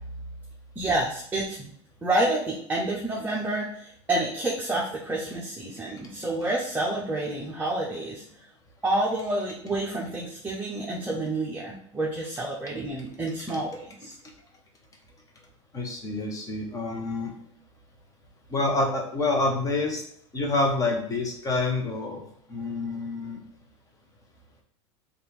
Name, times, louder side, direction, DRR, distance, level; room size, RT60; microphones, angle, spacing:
voice 1, 0.8-1.7 2.0-8.2 8.8-14.2, right 1 dB, 10° right, -4 dB, 0.9 m, -29 dB
voice 2, 15.7-17.3 18.5-20.0 20.3-22.2 22.5-23.4, left 2 dB, 20° left, 1 dB, 1.2 m, -27 dB
3.4 x 2.6 x 4.5 m, 0.64 s
hypercardioid pair, 105°, 15 cm